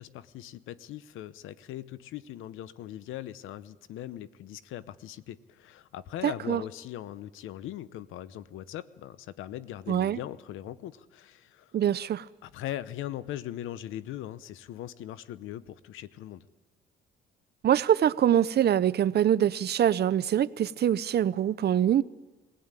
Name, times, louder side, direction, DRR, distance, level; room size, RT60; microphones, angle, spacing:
voice 1, 0.0-11.8 12.4-16.5, left 12 dB, 90° left, 0.9 m, -40 dB
voice 2, 6.2-6.6 9.9-10.2 11.7-12.3 17.6-22.0, right 10 dB, 55° right, 0.7 m, -24 dB
22.0 x 17.0 x 9.1 m
cardioid pair, 90°, 20 cm